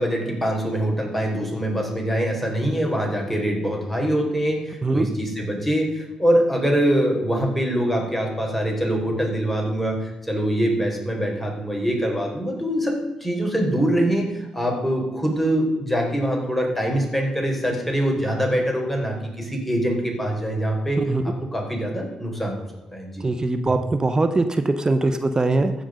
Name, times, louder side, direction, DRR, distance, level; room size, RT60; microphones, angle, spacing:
voice 1, 0.0-21.0 21.5-22.7 22.9-23.2, equal, 5° left, 0 dB, 4.4 m, -24 dB
voice 2, 23.2-25.7, right 2 dB, 30° right, 8 dB, 0.9 m, -21 dB
15.0 x 5.2 x 5.1 m, 1.0 s
hypercardioid pair, 50°, 2 cm